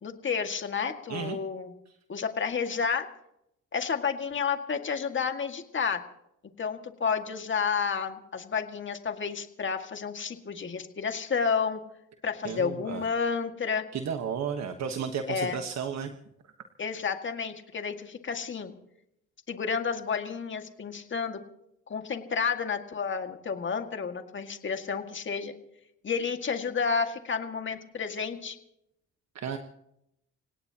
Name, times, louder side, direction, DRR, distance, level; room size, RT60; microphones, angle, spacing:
voice 1, 0.0-1.7 2.1-3.1 3.7-6.0 6.6-11.8 12.2-13.9 15.3-15.6 16.8-18.7 19.5-21.4 21.9-25.5 26.0-28.6, left 6 dB, 40° left, 6 dB, 2.0 m, -31 dB
voice 2, 12.4-13.1 13.9-16.1 16.4-16.7 29.3-29.6, right 7 dB, 60° right, 6 dB, 1.3 m, -33 dB
28.0 x 17.5 x 2.9 m, 0.79 s
cardioid pair, 90°, 30 cm